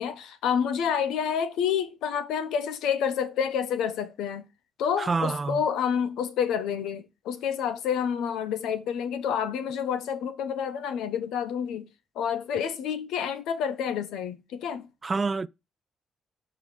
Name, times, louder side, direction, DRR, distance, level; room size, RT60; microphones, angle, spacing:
voice 1, 0.0-4.4 4.8-11.9 12.1-14.9, left 8 dB, 85° left, 1.1 m, -28 dB
voice 2, 5.0-5.6 15.0-15.5, right 4 dB, 30° right, 0.4 m, -27 dB
7.0 x 4.9 x 6.2 m
cardioid pair, 90°, 0 cm